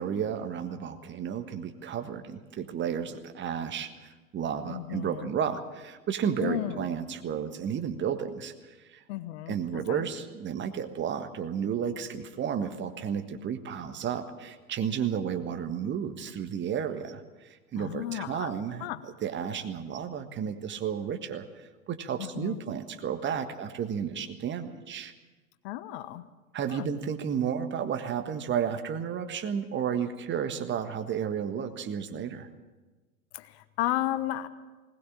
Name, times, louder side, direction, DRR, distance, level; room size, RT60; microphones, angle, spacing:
voice 1, 0.0-9.0 9.5-25.1 26.5-32.5, right 8 dB, 25° right, 7 dB, 1.6 m, -32 dB
voice 2, 4.7-5.3 6.4-6.9 9.1-10.1 17.8-18.5 18.8-19.0 22.2-22.6 25.6-26.2 26.7-26.9 33.3-34.5, left 14 dB, 45° left, 12 dB, 1.2 m, -33 dB
20.5 x 19.0 x 7.4 m, 1.2 s
figure-of-eight pair, 90°, 43 cm